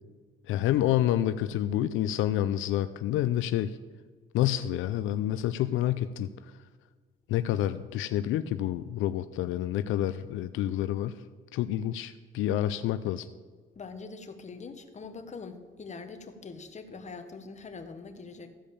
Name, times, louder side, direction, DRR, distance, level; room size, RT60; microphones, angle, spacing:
voice 1, 0.5-3.8 4.3-6.3 7.3-11.2 11.5-13.3, left 12 dB, 85° left, 12 dB, 0.4 m, -28 dB
voice 2, 13.7-18.5, left 4 dB, 35° left, 7 dB, 1.2 m, -43 dB
14.5 x 5.1 x 7.0 m, 1.5 s
cardioid pair, 90°, 20 cm